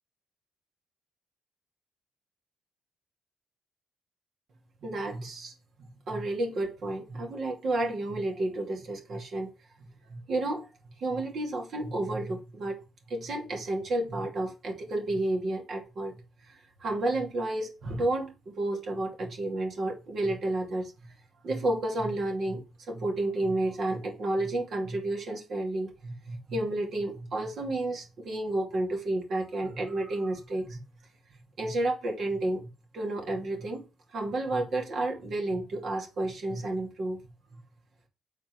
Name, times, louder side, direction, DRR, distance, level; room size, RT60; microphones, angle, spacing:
voice 1, 4.8-5.5 5.8-9.5 9.8-10.7 11.0-12.8 13.1-16.2 16.5-16.6 16.8-20.9 21.4-30.8 31.6-33.9 34.1-37.2, right 2 dB, 60° right, 0 dB, 2.6 m, -31 dB
7.7 x 4.3 x 4.8 m, 0.30 s
cardioid pair, 90°, 0 cm